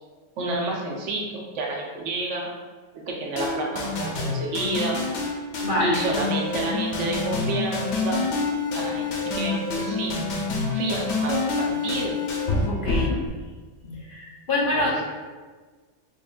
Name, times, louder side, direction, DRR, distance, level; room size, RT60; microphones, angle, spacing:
voice 1, 0.4-2.5 2.9-5.0 5.8-8.2 8.7-10.2 10.7-12.2 14.7-15.0, right 2 dB, 85° right, -1 dB, 1.1 m, -29 dB
sound 1, 3.4-13.3, left 3 dB, 90° left, 1.0 m, -27 dB
voice 2, 5.6-6.0 12.7-13.2 13.8-15.0, left 2 dB, 50° left, -4 dB, 0.8 m, -26 dB
3.7 x 3.7 x 2.3 m, 1.4 s
omnidirectional pair, 1.2 m